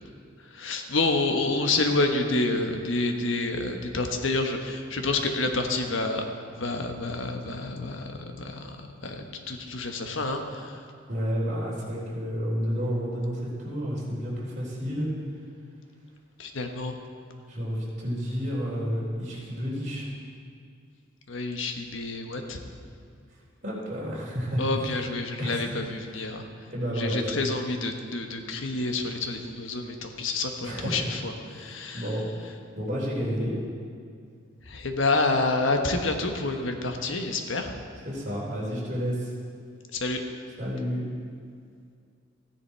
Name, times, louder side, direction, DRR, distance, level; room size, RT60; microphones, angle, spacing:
voice 1, 0.5-6.2 6.6-8.8 9.0-10.8 16.4-17.0 21.3-22.6 24.6-26.4 27.0-32.1 34.7-37.7 39.9-40.2, left 2 dB, 85° left, 5 dB, 1.2 m, -28 dB
voice 2, 11.1-15.1 17.5-20.1 23.6-25.0 25.4-25.7 26.1-26.2 26.7-27.4 30.6-31.0 31.5-32.5 32.8-33.5 38.1-39.3 40.6-41.0, equal, 40° right, -5 dB, 3.5 m, -30 dB
15.0 x 10.0 x 4.5 m, 2.3 s
head